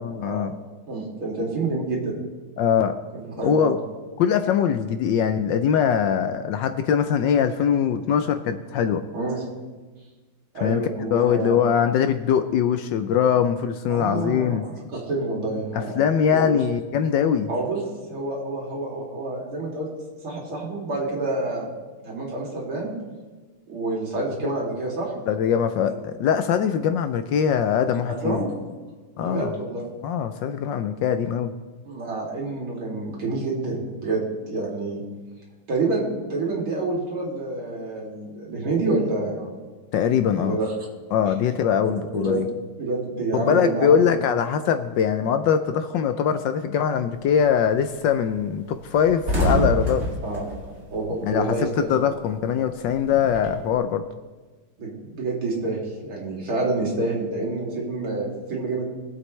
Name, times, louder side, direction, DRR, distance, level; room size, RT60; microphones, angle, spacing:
voice 1, 0.0-0.5 2.6-2.9 3.4-3.8 4.2-9.0 10.6-14.6 15.7-17.5 25.3-28.4 29.2-29.5 30.0-31.5 39.9-40.6 41.1-42.5 43.3-50.1 51.2-51.6 51.9-54.0, left 8 dB, 75° left, 9 dB, 1.1 m, -22 dB
voice 2, 0.9-2.2 3.1-3.8 9.1-9.4 10.5-11.6 13.9-16.0 16.3-16.5 17.5-17.8 18.1-19.9 20.2-21.7 22.0-22.9 23.7-25.1 25.8-25.9 28.1-28.5 29.2-29.9 31.9-35.0 35.7-39.5 40.4-40.7 42.1-42.4 42.8-44.1 50.2-50.5 50.9-52.1 54.8-58.8, right 2 dB, 70° right, -3 dB, 3.5 m, -28 dB
sound 1, 47.2-47.5 47.9-48.0 48.3-48.4 48.7-51.7 52.0-53.7, equal, 30° right, 2.6 m, -27 dB
22.0 x 7.8 x 3.2 m, 1.3 s
omnidirectional pair, 2.4 m